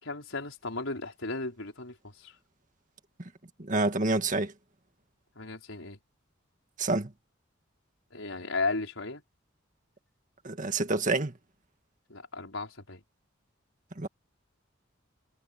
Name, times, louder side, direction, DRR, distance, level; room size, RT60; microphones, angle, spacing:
voice 1, 0.0-2.3 5.4-6.0 8.1-9.2 12.1-13.0, left 3 dB, 75° left, 5.0 m, -35 dB
voice 2, 3.6-4.5 6.8-7.1 10.4-11.3 14.0-14.1, right 2 dB, 40° right, 1.9 m, -27 dB
head